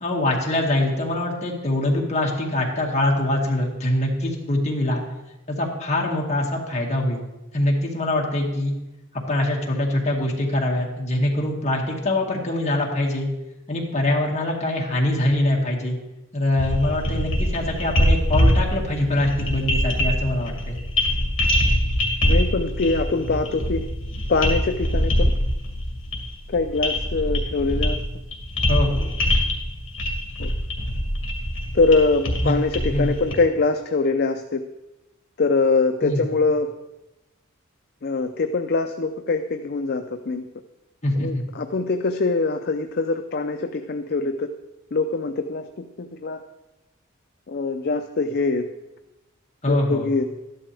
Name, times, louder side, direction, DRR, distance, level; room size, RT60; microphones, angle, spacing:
voice 1, 0.0-5.0 5.5-7.2 7.5-8.8 9.3-13.3 13.7-16.0 16.3-20.8 28.7-29.1 32.4-32.5 32.9-33.1 36.0-36.2 41.0-41.4 49.6-50.1, left 1 dB, 35° left, -2 dB, 2.0 m, -23 dB
sound 1, 16.6-33.4, equal, 65° left, 2.2 m, -23 dB
voice 2, 22.3-23.8 24.3-25.3 26.5-28.0 30.4-30.5 31.7-34.6 35.4-36.7 38.0-40.4 41.2-44.5 44.9-46.4 47.5-48.7 49.7-50.2, left 3 dB, 50° left, 7 dB, 0.5 m, -23 dB
13.0 x 11.0 x 3.4 m, 0.98 s
head